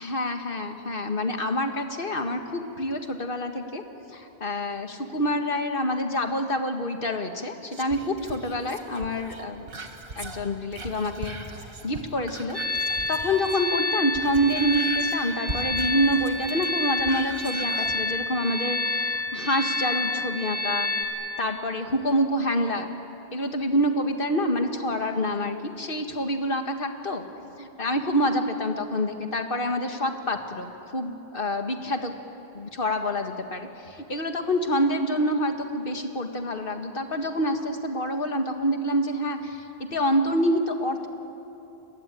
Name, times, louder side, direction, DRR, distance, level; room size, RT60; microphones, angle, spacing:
voice 1, 0.0-3.8 4.1-9.7 10.2-11.4 11.8-12.6 13.1-20.9 21.4-22.9 23.3-32.1 32.5-39.6 39.9-41.1, equal, 55° left, 5 dB, 2.0 m, -27 dB
Whispering, 7.7-13.7 14.0-18.0 18.4-18.5, right 3 dB, 55° right, 1.9 m, -40 dB
sound 1, 12.5-21.0, left 2 dB, 35° left, 4.4 m, -28 dB
28.5 x 21.0 x 9.2 m, 2.9 s
omnidirectional pair, 1.1 m